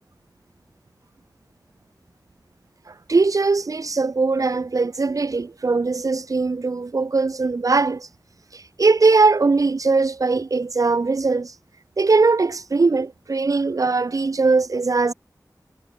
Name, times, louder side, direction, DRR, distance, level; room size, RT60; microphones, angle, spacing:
voice 1, 2.9-8.1 8.5-11.5 12.0-15.1, right 3 dB, 55° right, 1.6 m, -20 dB
wide cardioid pair, 90°, 7 cm